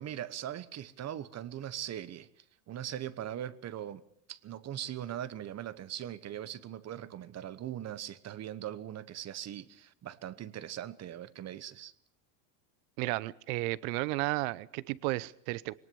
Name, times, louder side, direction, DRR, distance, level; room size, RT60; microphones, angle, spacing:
voice 1, 0.0-2.3 2.7-4.0 4.3-11.9, right 11 dB, 35° right, 15 dB, 1.1 m, -40 dB
voice 2, 13.0-15.8, right 21 dB, 65° right, 20 dB, 1.0 m, -33 dB
22.0 x 19.0 x 7.0 m, 0.68 s
supercardioid pair, 120°, 48 cm